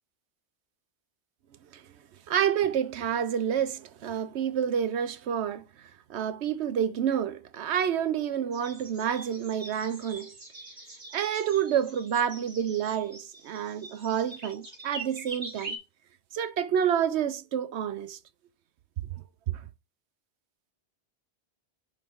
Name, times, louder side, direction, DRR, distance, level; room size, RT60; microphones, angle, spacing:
voice 1, 2.3-5.7 6.1-10.3 11.1-15.8 16.3-18.2 19.5-19.6, right 9 dB, 80° right, 0.9 m, -28 dB
sound 1, 8.5-15.8, right 2 dB, 35° right, 1.7 m, -44 dB
10.5 x 3.9 x 3.6 m
omnidirectional pair, 1.1 m